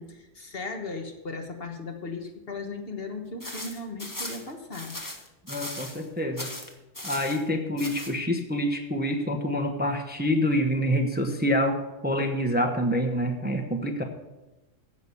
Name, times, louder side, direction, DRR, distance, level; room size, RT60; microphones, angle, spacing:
voice 1, 0.0-5.0, left 3 dB, 50° left, 4 dB, 1.5 m, -37 dB
sound 1, 3.4-6.1 6.4-7.4 7.8-8.1, left 1 dB, 15° left, 1.2 m, -38 dB
voice 2, 5.5-6.5 7.0-14.0, equal, 10° right, 4 dB, 1.0 m, -26 dB
15.0 x 6.2 x 7.1 m, 1.1 s
omnidirectional pair, 1.3 m